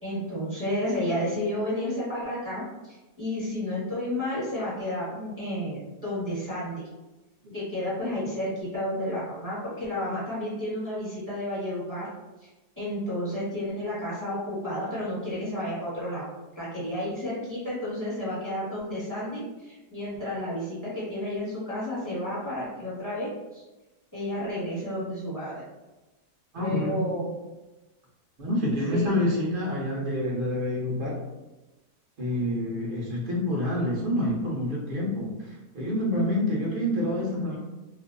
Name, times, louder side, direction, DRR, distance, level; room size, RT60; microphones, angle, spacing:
voice 1, 0.0-6.8 7.5-12.1 12.8-16.3 16.6-23.6 24.1-25.6 26.6-27.3 28.9-29.2, left 1 dB, 15° right, -11 dB, 0.8 m, -31 dB
voice 2, 26.5-27.1 28.4-31.2 32.2-37.6, left 1 dB, 55° right, -4 dB, 0.6 m, -27 dB
2.6 x 2.0 x 2.5 m, 1.1 s
omnidirectional pair, 1.6 m